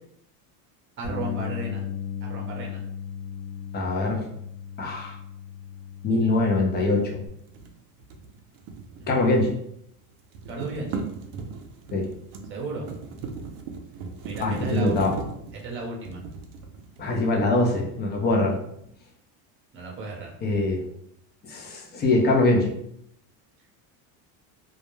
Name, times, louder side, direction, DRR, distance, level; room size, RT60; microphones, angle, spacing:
Bass guitar, 1.0-7.3, left 7 dB, 85° left, 1.0 m, -36 dB
voice 1, 1.0-1.8 2.2-2.8 9.0-9.4 10.5-11.0 12.5-12.9 14.2-15.0 15.6-16.2 19.7-20.3, right 3 dB, 30° right, -1 dB, 0.8 m, -34 dB
voice 2, 3.7-4.2 4.8-5.2 6.0-7.2 9.1-9.5 11.9-12.1 14.4-15.1 17.0-18.6 20.4-20.8 21.4-22.7, left 2 dB, 25° left, 0 dB, 0.5 m, -23 dB
sound 1, 7.5-9.7 10.0-17.3, right 4 dB, 60° right, 0.5 m, -38 dB
2.3 x 2.0 x 3.0 m, 0.73 s
supercardioid pair, 130°, 43 cm